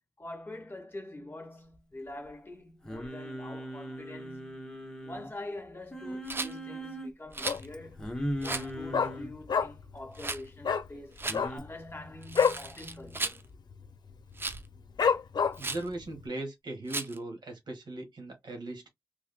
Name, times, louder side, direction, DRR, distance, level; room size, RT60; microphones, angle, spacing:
voice 1, 0.2-4.6 5.0-8.1 8.4-13.4, left 1 dB, 30° left, 1.6 m, -45 dB
Singing, 2.8-5.3 5.9-7.1 8.0-9.3 11.3-11.6, equal, 10° left, 1.2 m, -38 dB
Rattle, 6.2-6.5 7.3-7.7 8.4-8.7 10.1-10.4 11.2-11.4 12.2-13.4 14.4-14.7 15.6-15.9 16.9-17.2, right 3 dB, 30° right, 0.5 m, -35 dB
Dog, 7.4-7.9 8.2-8.3 8.5-10.0 10.2-10.3 10.6-10.9 11.2-12.7 13.0-13.2 13.4-13.9 14.3-14.4 15.0-15.8 16.3-16.4, left 6 dB, 75° left, 0.6 m, -27 dB
voice 2, 15.6-18.9, right 2 dB, 85° right, 1.6 m, -39 dB
3.4 x 3.4 x 2.2 m
wide cardioid pair, 95°, 7 cm